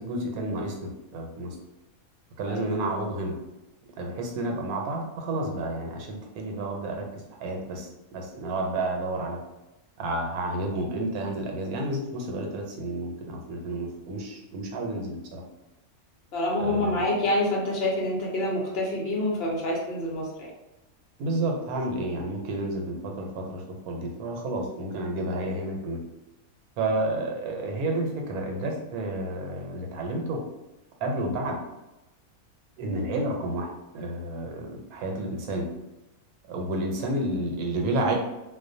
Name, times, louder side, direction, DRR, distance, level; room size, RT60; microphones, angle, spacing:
voice 1, 0.0-1.6 2.4-3.4 4.0-9.4 10.0-15.4 16.6-17.0 21.2-26.0 26.8-30.4 31.0-31.6 32.8-35.7 36.5-38.1, right 1 dB, 85° right, 1 dB, 1.1 m, -30 dB
voice 2, 2.5-2.9 4.3-4.5 14.7-14.8 16.3-20.5, left 1 dB, 55° left, -3 dB, 0.8 m, -27 dB
2.4 x 2.1 x 2.6 m, 0.97 s
omnidirectional pair, 1.5 m